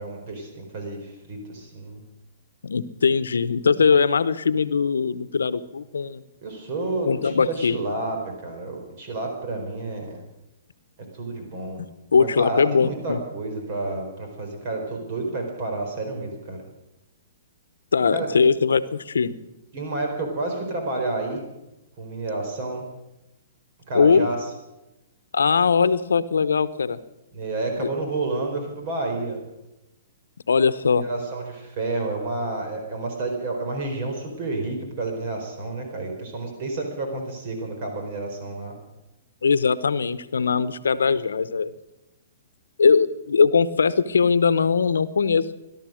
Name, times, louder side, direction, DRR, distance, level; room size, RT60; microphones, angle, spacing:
voice 1, 0.0-2.0 6.4-10.2 11.1-11.8 12.2-16.6 18.1-18.3 19.7-21.4 22.0-22.8 23.9-24.4 27.3-29.4 31.0-38.7, right 2 dB, 50° right, 3 dB, 4.2 m, -30 dB
voice 2, 2.6-6.2 7.0-7.8 12.1-13.2 17.9-19.3 23.9-24.3 25.3-27.0 27.8-27.9 30.5-31.0 39.4-41.7 42.8-45.7, left 5 dB, 85° left, 15 dB, 0.8 m, -20 dB
17.5 x 12.5 x 6.4 m, 0.96 s
hypercardioid pair, 130°, 0 cm